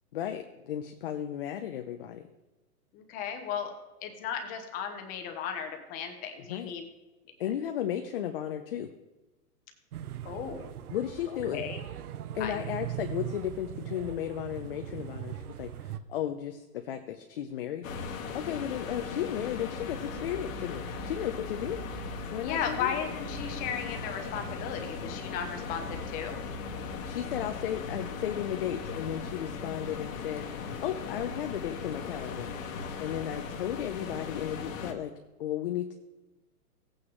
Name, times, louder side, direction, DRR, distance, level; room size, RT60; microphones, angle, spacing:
voice 1, 0.1-2.2 6.5-6.7 7.4-8.9 10.9-11.7 12.3-17.9 18.3-21.8 22.3-23.0 27.0-35.1 35.4-35.9, left 10 dB, 40° left, 5 dB, 0.6 m, -34 dB
voice 2, 2.9-3.7 4.0-6.8 10.2-10.7 11.5-11.8 12.4-12.5 22.4-26.4, left 8 dB, 20° left, 5 dB, 0.9 m, -35 dB
sound 1, 9.9-16.0, right 11 dB, 70° right, 0.7 m, -40 dB
sound 2, 17.8-34.9, left 5 dB, 55° left, 1.5 m, -38 dB
sound 3, 19.7-27.7, right 4 dB, 25° right, 1.0 m, -46 dB
16.0 x 8.7 x 3.2 m, 1.1 s
hypercardioid pair, 150°, 47 cm